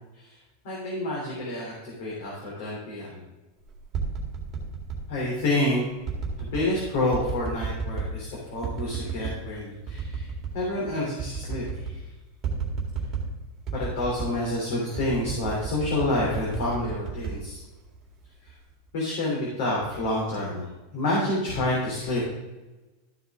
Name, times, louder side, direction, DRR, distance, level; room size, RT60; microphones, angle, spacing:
voice 1, 0.6-3.2 5.1-5.8 6.4-10.3 10.5-12.0 13.7-17.6 18.4-18.5 18.9-22.2, left 1 dB, 50° left, -4 dB, 3.0 m, -28 dB
sound 1, 3.7-5.0 6.0-6.7 7.1-8.2 8.6-9.4 9.9-10.6 10.9-11.0 11.2-12.0 12.4-13.3 13.7-14.4 14.9-18.1 18.5-18.9, right 5 dB, 20° right, 2.0 m, -32 dB
13.0 x 6.9 x 3.6 m, 1.1 s
supercardioid pair, 180°, 0 cm